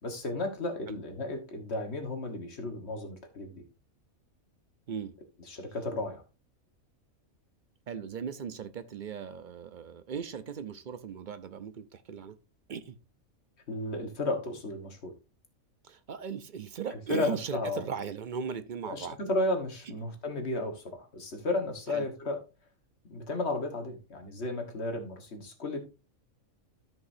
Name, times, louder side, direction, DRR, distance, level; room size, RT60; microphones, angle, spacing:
voice 1, 0.0-3.6 5.5-6.2 13.7-15.1 16.9-17.8 18.9-22.4 23.1-25.8, left 2 dB, 50° left, 1.7 m, -33 dB
voice 2, 7.9-12.4 12.7-13.0 15.8-19.2 21.9-22.1, right 7 dB, 55° right, 0.5 m, -38 dB
13.5 x 5.3 x 2.6 m
omnidirectional pair, 1.4 m